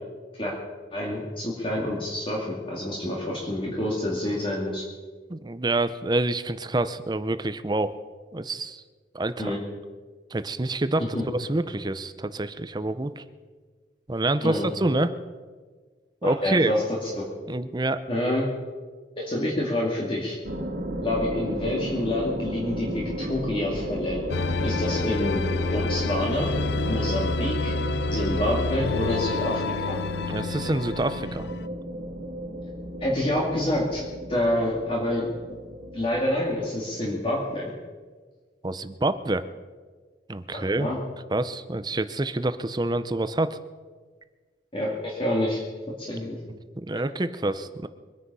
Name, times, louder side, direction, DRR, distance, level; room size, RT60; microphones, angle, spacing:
voice 1, 0.9-4.8 9.4-9.6 11.1-11.2 14.4-14.7 16.2-17.2 18.1-18.5 19.2-20.4 21.0-24.2 24.6-25.4 25.7-26.5 26.8-27.7 28.1-30.0 33.0-34.0 34.3-35.3 35.9-37.7 40.5-41.0 44.7-45.6 46.0-46.4, left 1 dB, 30° left, -4 dB, 2.6 m, -27 dB
voice 2, 5.3-8.0 8.3-8.8 9.1-9.6 10.3-11.0 11.3-13.2 14.1-15.1 16.2-16.7 17.5-18.0 30.3-31.5 38.6-39.4 40.3-40.9 41.3-43.6 46.8-47.9, right 2 dB, 25° right, 12 dB, 0.6 m, -27 dB
sound 1, 20.4-37.5, equal, 70° right, 2.1 m, -34 dB
sound 2, 24.3-31.7, left 3 dB, 70° left, 0.6 m, -28 dB
24.0 x 9.9 x 5.5 m, 1.5 s
head